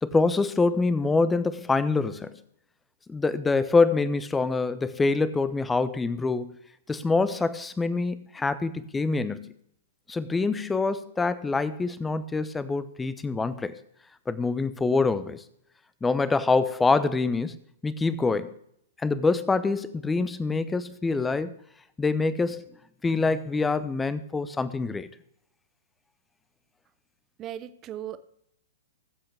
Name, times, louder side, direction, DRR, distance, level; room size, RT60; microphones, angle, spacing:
voice 1, 0.0-2.4 3.1-6.5 6.9-9.5 10.1-13.8 14.3-15.4 16.0-17.6 17.8-18.5 19.0-21.5 22.0-22.6 23.0-25.1, left 3 dB, 10° left, 15 dB, 0.8 m, -25 dB
voice 2, 27.4-28.2, right 11 dB, 25° right, 13 dB, 0.9 m, -37 dB
20.5 x 7.7 x 3.4 m, 0.71 s
figure-of-eight pair, 110°, 0 cm